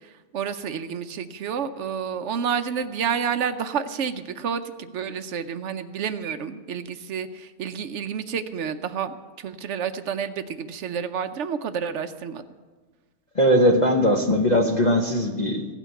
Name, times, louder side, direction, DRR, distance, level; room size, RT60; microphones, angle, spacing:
voice 1, 0.3-12.4, right 7 dB, 60° right, 10 dB, 0.8 m, -29 dB
voice 2, 13.4-15.7, equal, 35° left, 3 dB, 0.8 m, -20 dB
16.0 x 6.1 x 8.2 m, 1.4 s
omnidirectional pair, 1.6 m